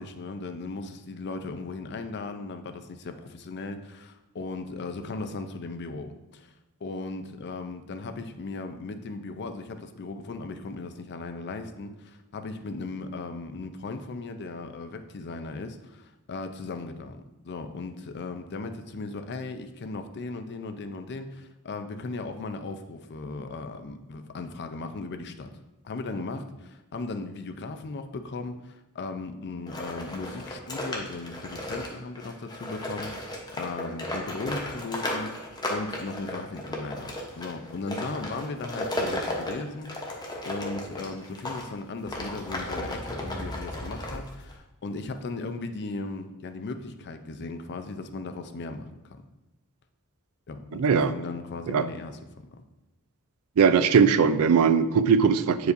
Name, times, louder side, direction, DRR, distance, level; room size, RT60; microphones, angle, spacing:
voice 1, 0.0-6.5 6.8-25.5 25.8-40.1 40.4-49.2 50.5-52.2, left 3 dB, 50° left, 8 dB, 0.5 m, -37 dB
sound 1, 29.7-41.6 42.0-44.5, left 1 dB, 20° left, 0.8 m, -34 dB
voice 2, 50.7-51.1 51.7-51.8 53.6-55.7, right 6 dB, 70° right, 12 dB, 0.4 m, -20 dB
8.1 x 4.8 x 2.6 m, 1.0 s
head